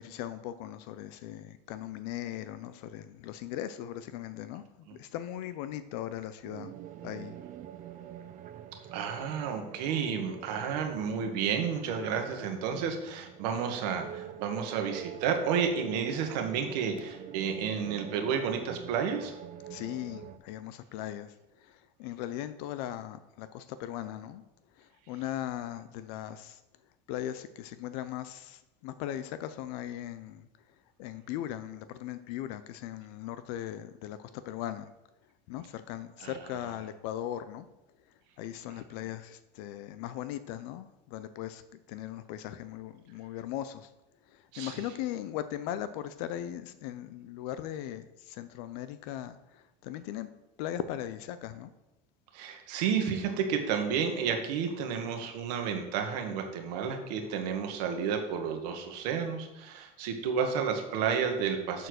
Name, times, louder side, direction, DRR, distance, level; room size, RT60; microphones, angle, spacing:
voice 1, 0.0-6.7 7.0-7.4 19.7-24.5 24.8-26.6 27.1-30.5 31.0-34.9 35.5-37.7 38.4-43.9 44.3-50.3 50.6-51.7, left 12 dB, 70° left, 12 dB, 0.5 m, -39 dB
sound 1, 6.4-20.4, right 11 dB, 40° right, 0.6 m, -46 dB
voice 2, 8.9-19.3 36.2-36.3 44.5-44.8 52.3-61.9, right 7 dB, 75° right, 4 dB, 1.4 m, -31 dB
6.6 x 4.5 x 6.3 m, 0.97 s
supercardioid pair, 115°, 21 cm